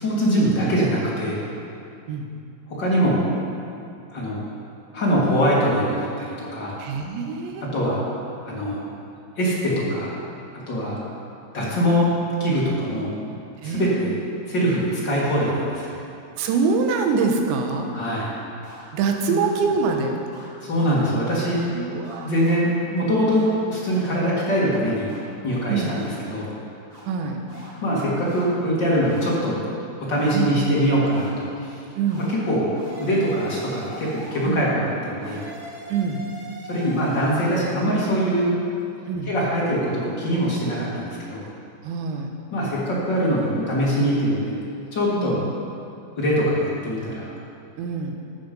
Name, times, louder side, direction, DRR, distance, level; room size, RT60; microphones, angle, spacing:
voice 1, 0.0-1.4 2.7-3.2 4.1-4.4 4.9-6.8 7.7-8.0 8.4-8.8 9.4-10.2 10.7-11.0 11.5-12.1 12.4-13.3 13.6-14.1 14.5-16.0 17.9-18.3 19.3-19.4 20.6-21.6 22.2-25.1 25.4-26.5 27.8-29.6 30.0-31.8 32.2-32.7 32.9-35.4 36.7-38.5 39.3-41.4 42.5-44.5 44.9-45.4 46.2-47.3, equal, 45° left, -6 dB, 1.5 m, -23 dB
voice 2, 6.8-7.6 13.6-14.0 16.4-17.9 18.9-20.2 21.7-22.3 25.7-25.9 27.1-27.4 30.3-30.6 32.0-32.3 34.4-34.7 35.9-36.3 39.1-39.3 41.8-42.3 45.2-45.5 47.8-48.2, right 5 dB, 85° right, 3 dB, 3.3 m, -24 dB
sound 1, 18.0-18.1 18.6-18.9 19.4-19.5 19.8-20.0 20.3-20.5 20.9-21.0 21.3-21.7 22.0-22.6 23.3-23.5 24.0-24.1 24.5-24.6 25.1-25.2 25.5-25.6 26.0-26.4 26.9-27.0 27.5-27.7 28.2-28.5 29.0-29.4 30.1-30.4 31.1-31.3 32.1-32.3 32.7-34.5 35.2-37.5, right 1 dB, 25° right, 3.0 m, -42 dB
13.5 x 8.6 x 5.3 m, 2.6 s
omnidirectional pair, 5.1 m